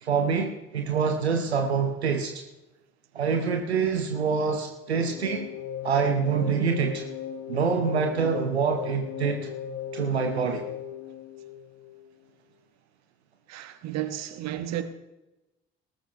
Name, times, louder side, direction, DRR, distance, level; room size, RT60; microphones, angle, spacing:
voice 1, 0.0-2.3 3.1-5.5 5.8-7.1 7.5-9.5 9.9-10.6, right 6 dB, 85° right, 1.0 m, -26 dB
sound 1, 4.9-12.1, left 9 dB, 50° left, 1.1 m, -37 dB
voice 2, 13.5-14.8, right 12 dB, 55° right, 1.3 m, -32 dB
19.0 x 13.5 x 3.4 m
figure-of-eight pair, 45°, 32 cm